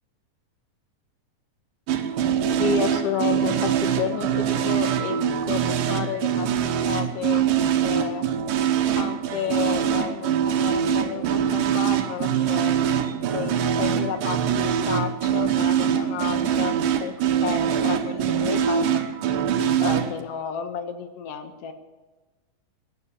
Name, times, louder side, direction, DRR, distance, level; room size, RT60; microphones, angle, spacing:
sound 1, 1.9-20.2, right 9 dB, 80° right, 2.7 m, -23 dB
voice 1, 2.6-5.2 5.5-8.3 8.9-12.7 13.3-17.1 17.4-19.0 19.8-21.7, left 8 dB, 60° left, 8 dB, 1.8 m, -31 dB
14.5 x 11.0 x 8.4 m, 1.2 s
omnidirectional pair, 3.9 m